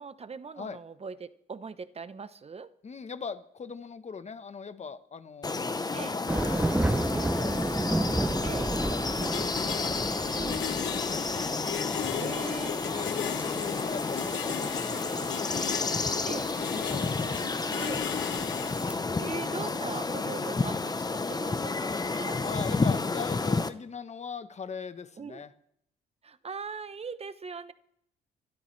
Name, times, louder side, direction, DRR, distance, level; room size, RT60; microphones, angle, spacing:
voice 1, 0.0-2.7 5.9-6.1 8.4-8.7 10.3-10.6 12.2-12.7 14.4-14.7 16.3-16.5 17.8-18.0 19.2-22.4 25.2-25.4 26.2-27.7, right 5 dB, 30° right, 13 dB, 0.9 m, -40 dB
voice 2, 2.8-9.5 9.8-11.2 11.9-12.6 12.9-18.4 22.4-25.5, left 5 dB, 35° left, 11 dB, 1.1 m, -42 dB
sound 1, 5.4-23.7, left 3 dB, 20° left, 0.8 m, -31 dB
sound 2, 6.3-18.9, right 1 dB, 5° right, 0.6 m, -34 dB
sound 3, 9.2-18.7, left 13 dB, 70° left, 0.5 m, -37 dB
28.5 x 12.5 x 3.3 m, 0.73 s
cardioid pair, 90°, 20 cm